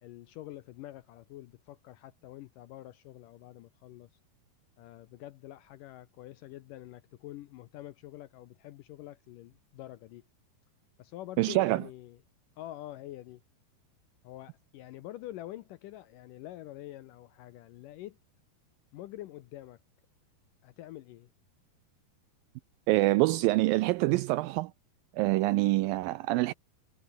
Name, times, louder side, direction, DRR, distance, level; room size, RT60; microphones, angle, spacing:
voice 1, 0.0-4.1 4.8-10.2 11.0-12.2 12.6-13.4 14.2-18.2 18.9-19.8 20.6-21.3, left 14 dB, 75° left, 2.0 m, -46 dB
voice 2, 11.4-11.8 22.9-24.7 25.1-26.5, right 19 dB, 85° right, 2.1 m, -25 dB
omnidirectional pair, 4.5 m